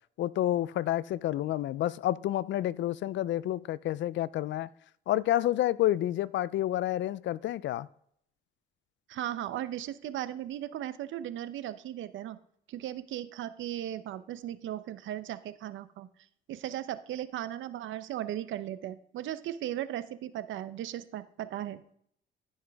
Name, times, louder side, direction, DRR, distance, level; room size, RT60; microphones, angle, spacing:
voice 1, 0.2-4.7 5.1-7.9, left 13 dB, 70° left, 0.4 m, -29 dB
voice 2, 9.1-12.4 12.7-16.1 16.5-21.8, right 12 dB, 80° right, 0.6 m, -37 dB
14.5 x 5.6 x 3.5 m
cardioid pair, 90°, 20 cm